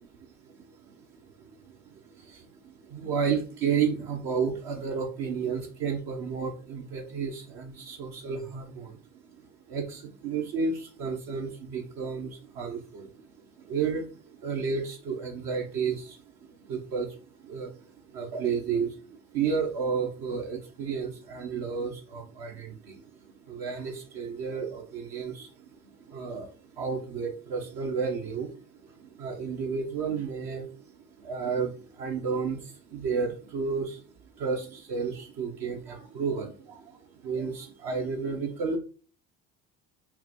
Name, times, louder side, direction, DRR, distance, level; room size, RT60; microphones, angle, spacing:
voice 1, 0.2-9.0 9.2-9.4 9.7-34.0 34.4-38.8, right 5 dB, 65° right, 1 dB, 0.9 m, -32 dB
5.6 x 2.2 x 2.9 m, 0.38 s
hypercardioid pair, 70°, 38 cm